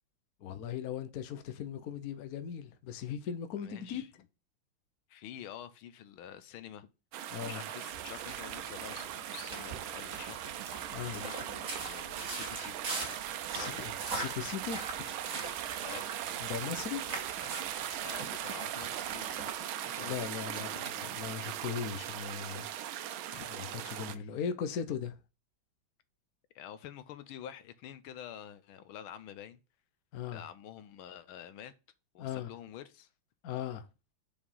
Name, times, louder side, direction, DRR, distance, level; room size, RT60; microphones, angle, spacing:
voice 1, 0.4-4.0 7.3-7.6 10.9-11.2 13.5-14.9 16.4-17.1 20.0-22.7 23.5-25.2 30.1-30.4 32.2-32.5 33.4-33.9, left 8 dB, 60° left, 1.1 m, -38 dB
voice 2, 3.6-4.1 5.1-6.9 7.5-12.9 13.4-13.8 15.8-16.1 18.0-21.1 23.3-23.5 23.9-24.3 26.5-29.6 30.3-31.7 32.1-33.1, left 10 dB, 85° left, 1.6 m, -48 dB
sound 1, 7.1-24.2, right 11 dB, 80° right, 1.5 m, -39 dB
sound 2, 7.9-19.6, right 3 dB, 40° right, 2.3 m, -43 dB
5.1 x 5.1 x 5.5 m
omnidirectional pair, 2.2 m